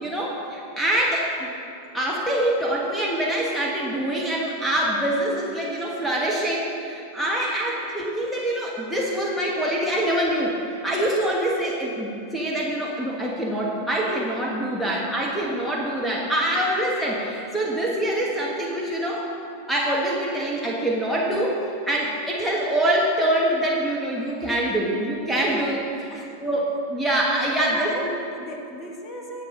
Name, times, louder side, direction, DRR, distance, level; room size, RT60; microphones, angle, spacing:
voice 1, 0.0-1.5 1.9-19.3 19.7-21.6 21.9-28.1, right 1 dB, ahead, -3 dB, 1.4 m, -25 dB
voice 2, 7.2-7.8 14.8-15.0 26.1-26.3 27.7-29.4, equal, 25° left, 1 dB, 1.6 m, -37 dB
19.0 x 6.8 x 3.8 m, 2.6 s
figure-of-eight pair, 90°, 0 cm